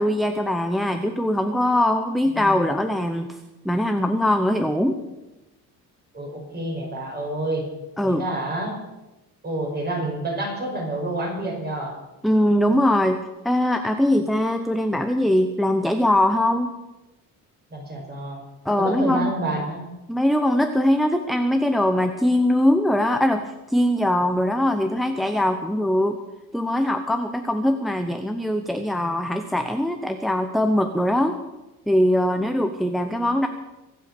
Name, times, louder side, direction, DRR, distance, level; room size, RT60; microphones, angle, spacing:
voice 1, 0.0-3.4 3.6-5.0 8.0-8.2 12.2-13.2 13.4-16.7 18.6-19.3 20.1-26.2 26.5-31.3 31.9-33.5, left 1 dB, ahead, 6 dB, 0.8 m, -21 dB
voice 2, 6.1-7.6 8.0-8.8 9.4-12.0 17.7-18.4 18.8-19.9, right 1 dB, 25° right, 0 dB, 5.5 m, -28 dB
24.0 x 8.4 x 6.7 m, 1.0 s
cardioid pair, 140°, 36 cm